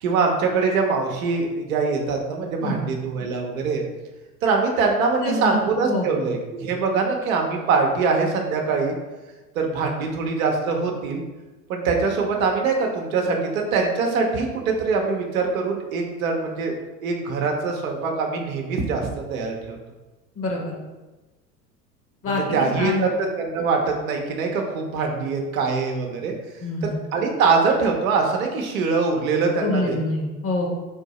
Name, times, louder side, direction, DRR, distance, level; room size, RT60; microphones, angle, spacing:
voice 1, 0.0-3.8 4.4-8.9 9.5-11.2 11.7-16.7 17.0-19.8 22.3-26.3 26.8-30.0, right 4 dB, 60° right, 2 dB, 0.8 m, -23 dB
voice 2, 5.2-6.2 20.4-20.8 22.2-23.1 26.6-27.0 29.6-30.7, left 1 dB, 30° left, -1 dB, 1.0 m, -26 dB
3.8 x 2.6 x 4.1 m, 1.2 s
figure-of-eight pair, 80°, 47 cm